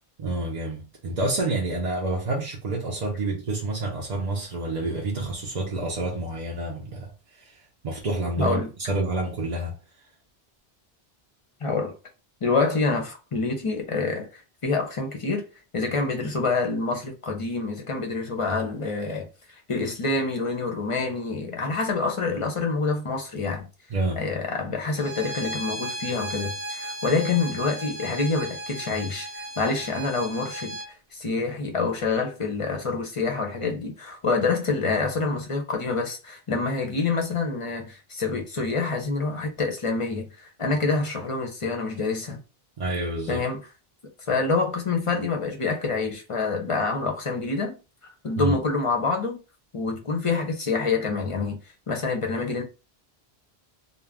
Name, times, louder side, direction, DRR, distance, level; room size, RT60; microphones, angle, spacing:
voice 1, 0.2-9.7 23.9-24.2 42.8-43.5 48.4-48.6, right 2 dB, 50° right, 0.6 m, -28 dB
voice 2, 8.4-8.7 11.6-12.0 12.4-14.3 14.6-15.4 15.7-19.3 19.7-23.7 24.2-30.8 31.1-40.3 40.6-42.4 43.3-43.6 44.3-47.8 48.2-49.4 49.7-51.6 51.9-52.6, left 3 dB, 40° left, 0.6 m, -26 dB
Bowed string instrument, 25.0-30.9, right 1 dB, 85° right, 0.9 m, -35 dB
2.4 x 2.1 x 3.4 m
omnidirectional pair, 1.0 m